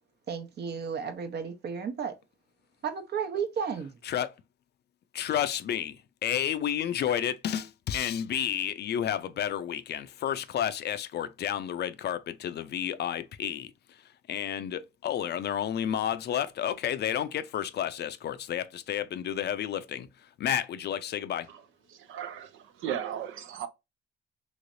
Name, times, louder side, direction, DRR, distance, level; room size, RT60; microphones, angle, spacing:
voice 1, 0.3-2.1 2.8-3.9, right 6 dB, 55° right, 0.9 m, -33 dB
voice 2, 5.1-6.0 6.2-13.7 14.3-20.1 20.4-21.5, left 10 dB, 60° left, 0.5 m, -31 dB
voice 3, 22.0-23.7, right 9 dB, 85° right, 0.6 m, -36 dB
3.2 x 3.1 x 2.5 m
cardioid pair, 90°, 20 cm